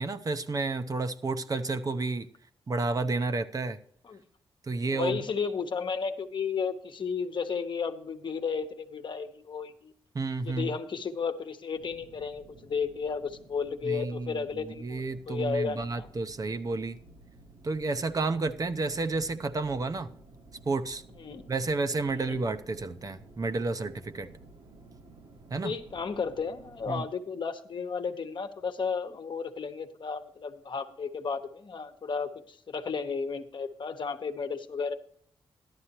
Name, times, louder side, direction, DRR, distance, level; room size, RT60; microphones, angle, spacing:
voice 1, 0.0-2.3 2.7-3.8 4.7-5.2 10.1-10.8 13.8-17.0 17.6-20.1 20.7-21.0 21.5-24.3 25.5-25.7 26.9-27.0, right 3 dB, 40° right, 0.7 m, -31 dB
voice 2, 4.9-9.9 10.4-16.1 21.2-21.5 22.1-22.4 25.6-34.9, left 5 dB, 55° left, 1.1 m, -33 dB
sound 1, 11.7-27.0, right 2 dB, 65° right, 1.5 m, -54 dB
13.5 x 11.5 x 3.0 m
cardioid pair, 85°, 10 cm